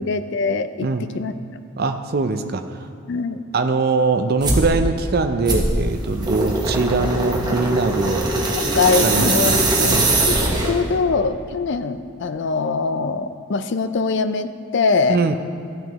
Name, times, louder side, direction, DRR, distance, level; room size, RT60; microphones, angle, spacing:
voice 1, 0.0-0.9 1.1-1.3 3.1-3.4 8.7-10.0 10.3-10.4 10.6-15.3, left 4 dB, 55° left, 11 dB, 0.4 m, -22 dB
voice 2, 1.8-2.6 3.5-8.3 9.0-9.6 9.8-10.1 15.1-15.3, right 3 dB, 45° right, 7 dB, 0.4 m, -22 dB
sound 1, 4.4-4.7 5.5-10.9, right 2 dB, 20° right, 1.0 m, -21 dB
13.0 x 9.0 x 3.0 m, 2.5 s
head